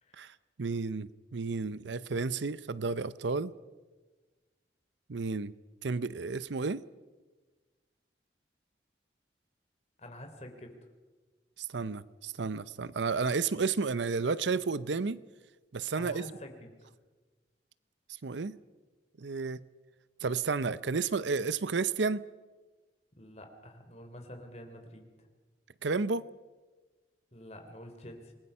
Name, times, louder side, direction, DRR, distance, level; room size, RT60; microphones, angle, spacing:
voice 1, 0.2-3.5 5.1-5.5 5.8-6.8 11.6-15.2 15.7-16.2 18.2-18.6 19.2-19.6 20.2-22.2 25.8-26.2, right 4 dB, 85° right, 0.6 m, -32 dB
voice 2, 10.0-10.8 15.9-16.7 23.1-25.3 27.3-28.3, left 1 dB, 35° left, 3.3 m, -48 dB
27.5 x 20.5 x 5.6 m
head